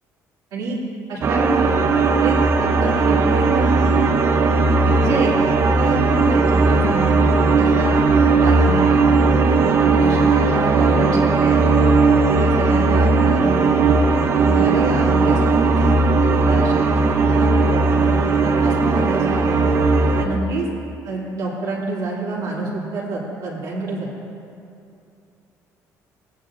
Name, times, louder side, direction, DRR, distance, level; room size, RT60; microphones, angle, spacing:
voice 1, 1.1-4.0 4.8-5.3 5.8-7.1 7.6-8.1 8.3-9.1 9.5-11.7 12.3-13.9 14.4-16.1 16.4-19.5 20.2-20.7 21.0-24.1, right 2 dB, 80° right, -8 dB, 2.6 m, -27 dB
sound 1, 1.2-20.2, right 3 dB, 40° right, 0.7 m, -17 dB
16.5 x 9.9 x 2.5 m, 2.6 s
cardioid pair, 125°, 6 cm